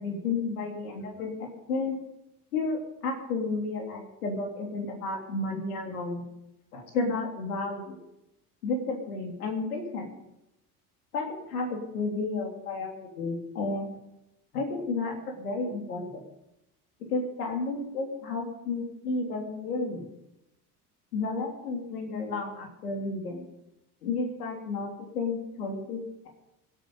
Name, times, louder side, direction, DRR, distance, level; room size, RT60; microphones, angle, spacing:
voice 1, 0.0-2.0 2.5-6.2 6.7-8.0 8.6-10.1 11.1-13.9 14.5-16.2 17.1-20.1 21.1-23.5 24.0-26.3, left 3 dB, 80° left, 1 dB, 3.5 m, -32 dB
25.0 x 9.2 x 5.6 m, 0.87 s
figure-of-eight pair, 60°, 44 cm